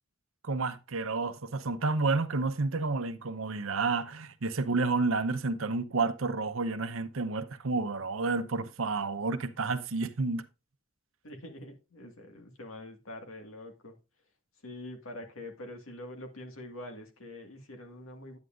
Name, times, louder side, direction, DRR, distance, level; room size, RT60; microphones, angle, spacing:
voice 1, 0.4-10.4, right 3 dB, 75° right, 0.8 m, -30 dB
voice 2, 11.2-14.0 14.6-18.4, left 1 dB, 85° left, 1.8 m, -45 dB
9.7 x 9.4 x 2.5 m
head